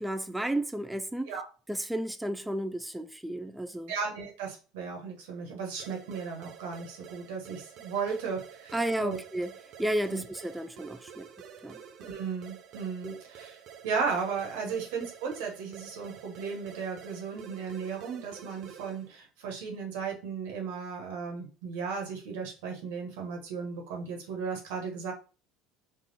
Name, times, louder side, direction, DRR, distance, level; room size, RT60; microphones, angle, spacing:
voice 1, 0.0-1.3 1.7-3.9 8.7-9.5 9.8-11.3 11.6-11.8 13.0-13.2 14.6-14.7, right 1 dB, 5° right, 0.3 m, -32 dB
voice 2, 3.9-9.2 10.1-10.2 12.0-13.6 13.8-25.1, right 5 dB, 80° right, 1.5 m, -35 dB
sound 1, 5.8-19.1, right 8 dB, 55° right, 0.6 m, -50 dB
4.0 x 2.4 x 4.1 m
supercardioid pair, 85°, 0 cm